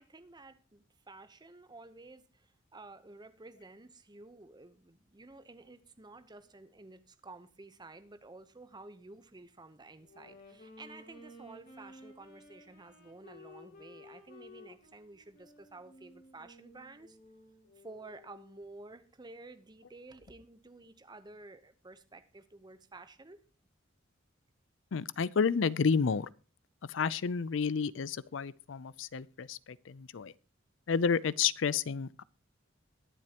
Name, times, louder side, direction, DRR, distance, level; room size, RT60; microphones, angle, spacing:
voice 1, 0.0-17.2 17.8-23.4, right 2 dB, 20° right, 0.9 m, -52 dB
Wind instrument woodwind instrument, 10.0-18.7, left 1 dB, 50° left, 2.9 m, -55 dB
voice 2, 24.9-26.3 26.9-30.3 30.9-32.2, left 6 dB, 70° left, 0.5 m, -30 dB
21.5 x 7.6 x 2.9 m
head